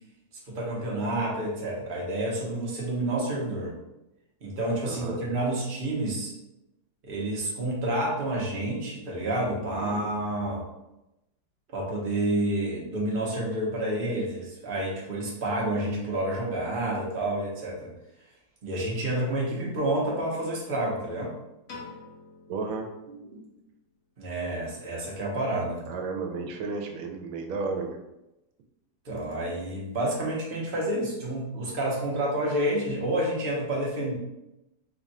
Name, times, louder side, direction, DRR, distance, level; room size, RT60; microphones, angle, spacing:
voice 1, 0.5-3.7 4.4-6.3 7.0-10.6 11.7-17.9 18.6-21.3 23.1-23.4 24.2-25.8 29.0-34.1, right 1 dB, 40° right, -4 dB, 0.8 m, -29 dB
voice 2, 4.8-5.2 9.8-9.9 22.5-22.9 25.9-28.0, right 4 dB, 85° right, 3 dB, 1.4 m, -33 dB
Piano, 21.7-23.9, left 4 dB, 60° left, 1.2 m, -47 dB
3.5 x 2.4 x 4.1 m, 0.92 s
omnidirectional pair, 2.2 m